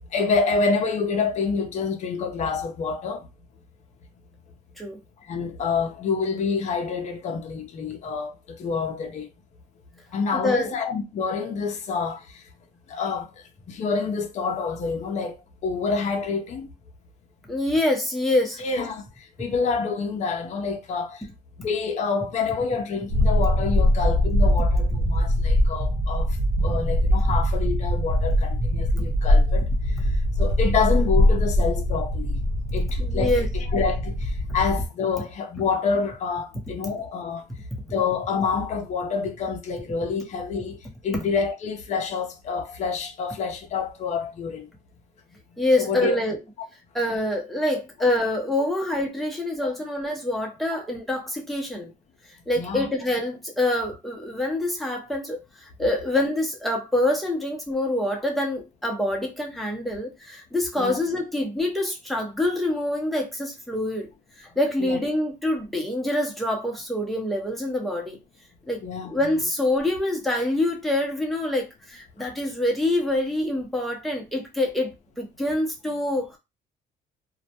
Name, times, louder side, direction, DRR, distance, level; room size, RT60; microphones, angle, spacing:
voice 1, 0.1-3.3 5.3-9.3 10.1-12.2 12.9-13.3 13.7-15.4 15.6-16.7 18.6-19.0 19.4-21.2 21.6-26.4 26.6-29.7 30.4-32.4 32.7-37.4 37.9-44.7 45.8-46.2 49.6-49.7 52.6-52.9 60.8-61.0 64.8-65.0 68.8-69.2, left 5 dB, 45° left, 0.5 m, -27 dB
voice 2, 10.3-10.7 17.5-18.6 33.0-33.5 45.6-46.4 46.9-51.9 52.5-64.1 64.4-68.2 68.7-68.8 69.1-76.4, left 1 dB, ahead, 0.7 m, -26 dB
sound 1, 23.1-34.9, equal, 40° right, 0.7 m, -22 dB
2.1 x 2.1 x 2.8 m
cardioid pair, 110°, 17 cm